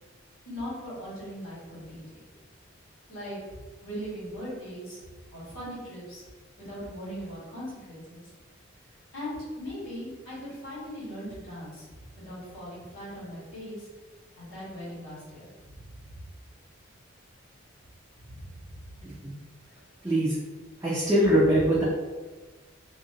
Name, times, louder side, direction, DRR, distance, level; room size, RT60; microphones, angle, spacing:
voice 1, 0.4-2.2 3.1-3.4 3.8-5.0 5.3-6.2 6.6-8.3 9.1-11.8 12.1-13.9 14.4-16.2 18.2-18.8, equal, 75° left, -10 dB, 1.4 m, -39 dB
voice 2, 20.0-20.3 20.8-21.8, right 1 dB, 15° right, -10 dB, 0.4 m, -22 dB
2.7 x 2.1 x 2.7 m, 1.3 s
head